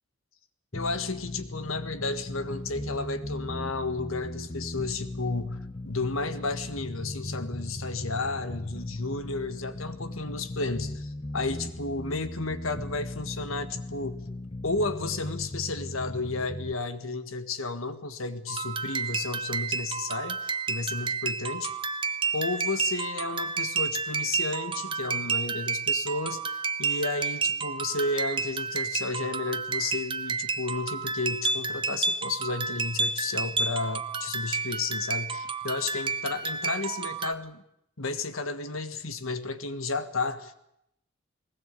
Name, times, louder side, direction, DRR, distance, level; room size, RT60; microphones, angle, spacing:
voice 1, 0.7-14.2 14.6-21.7 22.3-37.6 38.0-40.5, left 3 dB, 90° left, 10 dB, 1.7 m, -32 dB
sound 1, 0.7-16.7, left 1 dB, 25° left, 0.8 m, -38 dB
sound 2, 18.5-37.3, right 4 dB, 25° right, 0.8 m, -31 dB
20.5 x 19.5 x 8.4 m, 0.79 s
head